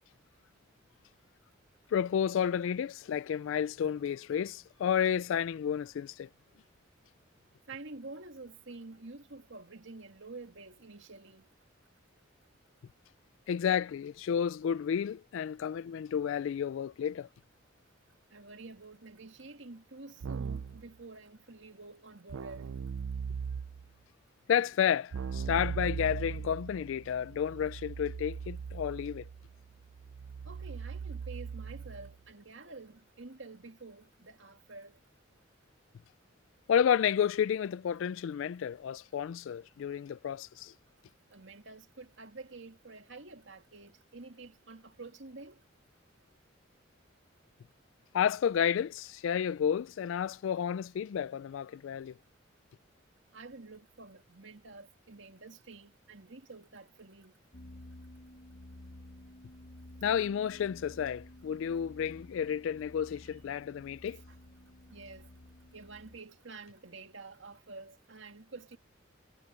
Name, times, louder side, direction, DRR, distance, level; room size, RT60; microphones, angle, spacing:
voice 1, 1.9-6.3 13.5-17.3 24.5-29.2 36.7-40.7 48.1-52.1 60.0-64.2, left 8 dB, 75° left, 0.3 m, -31 dB
voice 2, 7.7-11.5 18.3-22.7 30.4-35.0 41.3-45.6 53.3-57.3 64.1-64.4 64.9-65.3 65.7-68.8, right 3 dB, 70° right, 2.0 m, -49 dB
Keyboard (musical), 20.2-20.9 22.3-23.9 25.1-32.2, right 6 dB, 85° right, 0.4 m, -39 dB
sound 1, 57.5-66.2, left 1 dB, 45° left, 0.8 m, -52 dB
head